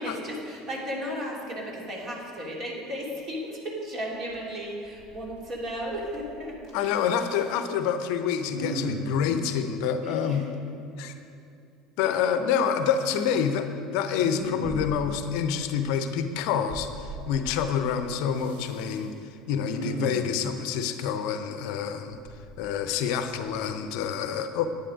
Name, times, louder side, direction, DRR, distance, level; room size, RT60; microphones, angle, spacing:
voice 1, 0.0-7.1 10.0-10.5 12.0-12.1, equal, 40° right, -3 dB, 3.1 m, -35 dB
Respiratory sounds, 4.3-4.4 4.8-5.4 5.6-6.4 6.7-7.8 8.4-9.2 12.8-13.5 14.0-15.1 16.7-17.3 18.3-19.0 19.5-20.3 22.1-23.0 23.5-23.6, right 1 dB, 75° right, 2.3 m, -37 dB
voice 2, 6.7-10.4 11.0-11.1 12.0-13.7 13.9-19.1 19.5-22.2 22.6-24.7, left 7 dB, 60° left, 9 dB, 0.7 m, -27 dB
11.0 x 9.8 x 5.1 m, 2.5 s
figure-of-eight pair, 70°, 0 cm